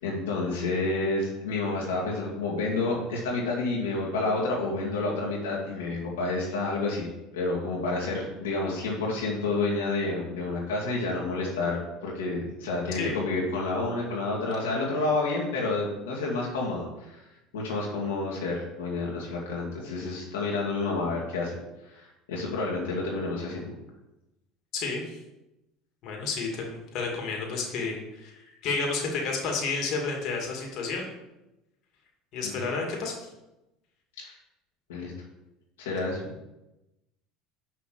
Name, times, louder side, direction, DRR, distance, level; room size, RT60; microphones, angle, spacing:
voice 1, 0.0-7.1 7.3-17.2 17.5-21.5 21.9-23.7 32.4-32.7 34.2-34.4 34.9-35.1 35.8-36.3, left 3 dB, 85° left, -4 dB, 2.1 m, -29 dB
voice 2, 24.7-25.2 26.0-28.3 28.6-31.1 32.3-33.3, left 4 dB, 60° left, 0 dB, 2.3 m, -31 dB
6.3 x 5.6 x 6.6 m, 0.95 s
hypercardioid pair, 85°, 0 cm